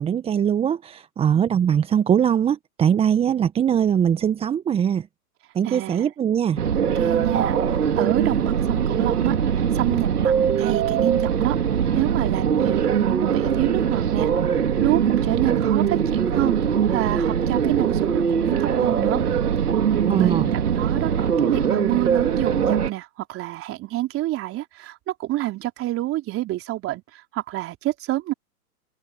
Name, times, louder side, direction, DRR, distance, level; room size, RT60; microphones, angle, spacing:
voice 1, 0.0-5.1 5.5-6.6 20.1-20.5, right 8 dB, 15° right, 0.9 m, -21 dB
voice 2, 5.6-6.1 6.9-9.4 9.7-11.6 11.9-14.3 14.8-16.6 16.9-19.2 20.2-21.1 21.4-27.0 27.3-28.3, right 16 dB, 30° right, 4.1 m, -27 dB
sound 1, 6.6-22.9, right 8 dB, 75° right, 3.8 m, -22 dB
open air
hypercardioid pair, 115°, 46 cm